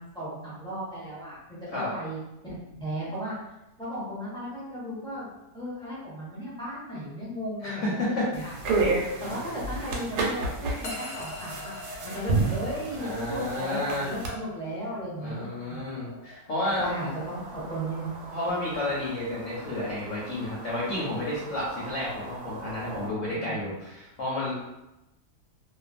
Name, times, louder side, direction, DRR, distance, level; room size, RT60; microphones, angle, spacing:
voice 1, 0.0-2.5 2.8-3.3 3.8-5.3 5.5-8.5 9.2-11.7 12.0-15.9 16.8-18.1 23.3-23.6, right 1 dB, 5° left, -10 dB, 0.8 m, -35 dB
voice 2, 7.6-8.3 13.0-14.1 15.2-16.9 18.3-24.5, left 1 dB, 60° left, -7 dB, 1.0 m, -31 dB
sound 1, 8.3-14.3, right 3 dB, 90° right, 1.1 m, -30 dB
sound 2, 10.8-21.2, left 1 dB, 85° left, 1.2 m, -45 dB
sound 3, 16.7-23.1, right 2 dB, 70° right, 0.9 m, -43 dB
2.6 x 2.3 x 2.4 m, 0.94 s
omnidirectional pair, 1.6 m